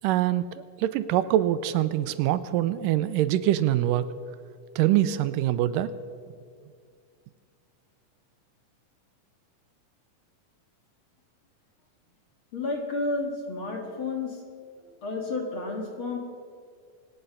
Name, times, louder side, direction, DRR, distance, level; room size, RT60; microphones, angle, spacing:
voice 1, 0.0-4.1 4.8-5.9, right 13 dB, 85° right, 13 dB, 2.2 m, -24 dB
voice 2, 12.5-14.4 14.9-16.2, left 3 dB, 45° left, 1 dB, 2.3 m, -31 dB
25.5 x 9.4 x 5.6 m, 2.1 s
omnidirectional pair, 3.9 m